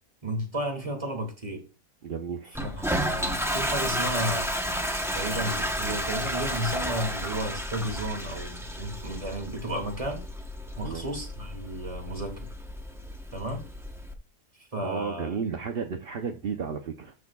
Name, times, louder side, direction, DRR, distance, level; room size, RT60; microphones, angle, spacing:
voice 1, 0.2-1.7 2.6-4.5 5.1-10.2 10.8-12.5 13.3-13.6 14.7-15.4, right 1 dB, 20° right, 2.3 m, -33 dB
voice 2, 2.0-2.6 10.8-11.1 14.8-17.1, right 6 dB, 50° right, 0.8 m, -33 dB
Toilet flush, 2.5-14.1, equal, ahead, 0.6 m, -32 dB
12.5 x 6.4 x 2.3 m
omnidirectional pair, 1.7 m